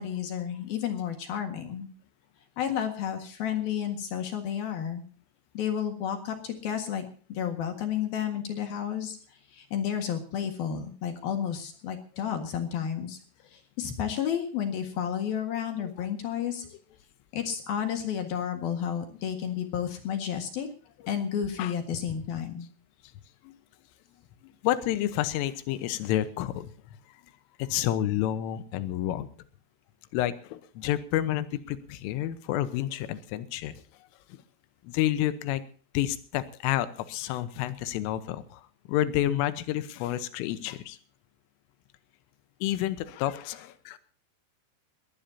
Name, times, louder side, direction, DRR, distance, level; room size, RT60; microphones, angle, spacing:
voice 1, 0.0-1.9 2.6-5.0 5.5-9.2 9.5-13.2 13.5-16.7 17.3-20.7 21.1-22.7, left 9 dB, 60° left, 6 dB, 3.1 m, -31 dB
voice 2, 24.4-26.7 27.1-27.2 27.6-29.3 30.1-33.8 34.3-34.4 34.9-35.6 36.0-41.0 42.6-44.0, left 13 dB, 85° left, 13 dB, 3.6 m, -29 dB
21.5 x 16.0 x 2.8 m, 0.41 s
omnidirectional pair, 5.7 m